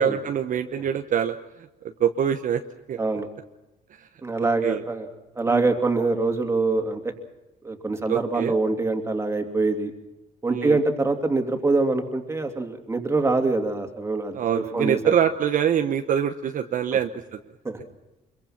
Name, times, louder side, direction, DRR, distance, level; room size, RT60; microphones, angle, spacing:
voice 1, 0.0-1.4 2.0-2.6 2.9-3.0 4.0-4.1 4.6-4.8 5.5-5.7 8.1-8.5 10.5-10.8 14.3-17.4, right 9 dB, 50° right, 6 dB, 1.0 m, -24 dB
voice 2, 4.2-5.1 5.4-7.1 7.6-9.9 10.4-15.1 17.6-17.8, right 3 dB, 15° right, 4 dB, 2.8 m, -24 dB
25.0 x 23.0 x 5.9 m, 1.0 s
cardioid pair, 110°, 17 cm